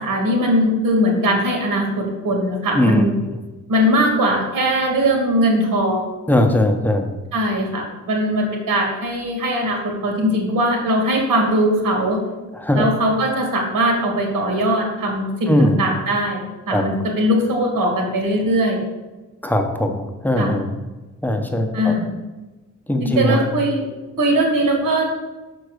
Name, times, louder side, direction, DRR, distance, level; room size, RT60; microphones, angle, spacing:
voice 1, 0.0-3.1 3.7-6.0 7.3-12.2 12.7-16.4 16.7-18.8 20.4-20.6 21.7-22.1 23.0-23.9 24.2-25.1, equal, 85° right, 1 dB, 2.1 m, -20 dB
voice 2, 2.7-3.1 6.3-7.1 12.5-12.9 15.5-15.8 16.7-16.8 19.4-20.7 21.2-22.0 22.9-23.4, left 1 dB, 5° left, 3 dB, 0.6 m, -19 dB
5.8 x 4.5 x 6.4 m, 1.2 s
wide cardioid pair, 170°, 32 cm